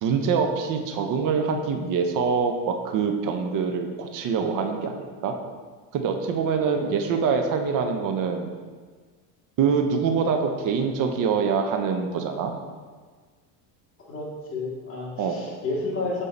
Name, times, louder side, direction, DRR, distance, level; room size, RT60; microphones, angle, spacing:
voice 1, 0.0-5.3 5.9-8.5 9.6-12.5 15.2-15.4, right 6 dB, 45° right, 5 dB, 0.8 m, -25 dB
voice 2, 6.6-6.9 14.1-16.2, left 3 dB, 30° left, -5 dB, 1.7 m, -31 dB
6.7 x 3.7 x 4.0 m, 1.5 s
supercardioid pair, 110°, 46 cm